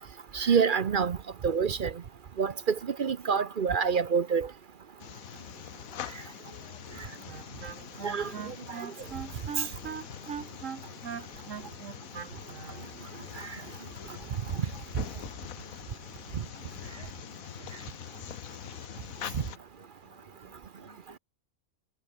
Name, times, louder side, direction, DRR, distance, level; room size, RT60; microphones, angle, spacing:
voice 1, 0.3-1.2 1.4-1.9 2.4-4.5 8.0-8.2, right 6 dB, 45° right, 0.7 m, -26 dB
sound 1, 5.0-19.6, left 10 dB, 75° left, 1.3 m, -44 dB
voice 2, 6.3-11.0 11.5-12.5 12.9-15.8 16.2-21.2, equal, 20° left, 8.2 m, -59 dB
Wind instrument woodwind instrument, 7.3-12.9, right 7 dB, 60° right, 1.6 m, -40 dB
omnidirectional pair, 1.5 m